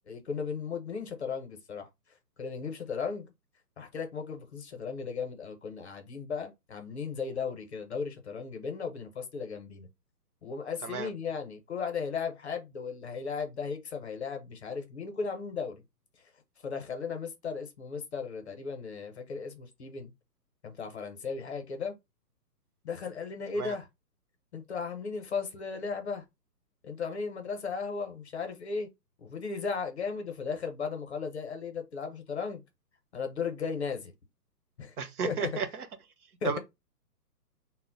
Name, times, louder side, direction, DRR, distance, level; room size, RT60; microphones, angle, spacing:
voice 1, 0.1-1.9 2.4-3.3 3.8-9.9 10.4-15.8 16.6-20.1 20.6-21.9 22.8-23.9 24.5-26.2 26.8-28.9 29.2-32.6 33.1-34.1 34.8-34.9 35.2-35.5 36.4-36.6, left 5 dB, 45° left, 0.6 m, -36 dB
voice 2, 35.0-35.9 36.4-36.6, right 6 dB, 65° right, 0.7 m, -33 dB
2.1 x 2.0 x 3.7 m
hypercardioid pair, 160°, 49 cm